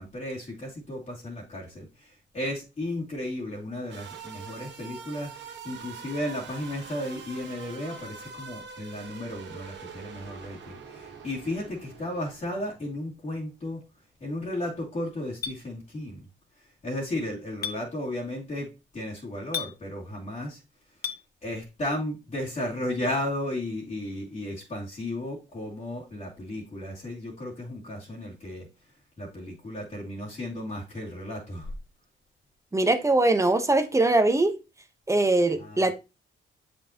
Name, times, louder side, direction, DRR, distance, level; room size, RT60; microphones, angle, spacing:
voice 1, 0.0-13.8 14.2-16.3 16.6-20.6 21.4-28.7 29.2-31.7 35.5-35.9, left 1 dB, 35° left, -4 dB, 2.5 m, -34 dB
sound 1, 3.9-12.7, right 5 dB, 65° right, 1.5 m, -44 dB
Chink clink, 15.4-15.6 17.6-17.8 19.5-19.7 21.0-21.2, left 7 dB, 50° left, 0.8 m, -31 dB
voice 2, 32.7-34.5 35.1-35.9, right 2 dB, 15° right, 9 dB, 1.0 m, -22 dB
7.6 x 5.4 x 2.9 m, 0.27 s
cardioid pair, 90°, 20 cm